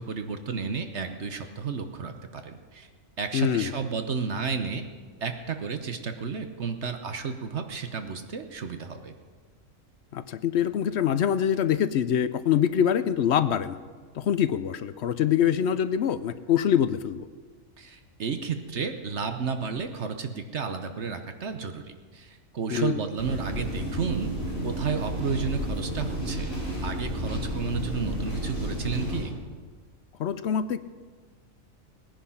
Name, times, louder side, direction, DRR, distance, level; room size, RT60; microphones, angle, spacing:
voice 1, 0.0-2.9 3.2-4.8 5.2-9.1 17.8-21.8 22.1-24.3 24.6-26.5 26.8-29.3, right 5 dB, 55° right, 7 dB, 1.2 m, -32 dB
voice 2, 3.3-3.7 10.1-13.8 14.1-17.2 22.7-23.0 30.2-30.8, left 9 dB, 65° left, 13 dB, 0.8 m, -24 dB
sound 1, 23.2-29.2, equal, 35° right, 5.5 m, -31 dB
18.5 x 10.5 x 5.7 m, 1.5 s
omnidirectional pair, 1.5 m